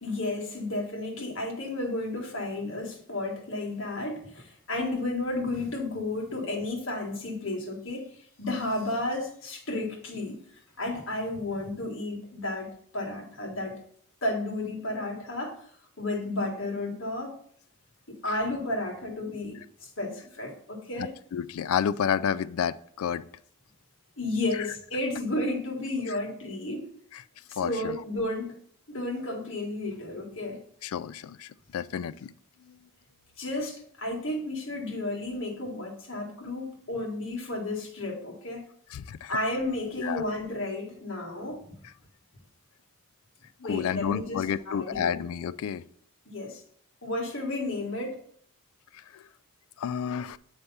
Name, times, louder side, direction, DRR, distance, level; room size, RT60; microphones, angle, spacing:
voice 1, 0.0-10.4 10.8-13.8 14.2-15.7 16.0-17.3 18.1-21.1 24.2-26.9 27.5-28.6 28.9-30.6 33.4-38.7 39.3-41.6 43.6-45.2 46.3-46.6 47.0-48.2, left 2 dB, 60° left, 1.7 m, -32 dB
voice 2, 21.0-23.3 24.6-24.7 26.1-26.2 27.1-27.2 27.6-28.0 30.8-32.3 32.7-32.8 38.9-39.4 40.0-40.2 43.7-45.8 48.9-49.2 49.8-50.4, left 8 dB, 75° left, 0.3 m, -30 dB
8.0 x 3.3 x 5.5 m
head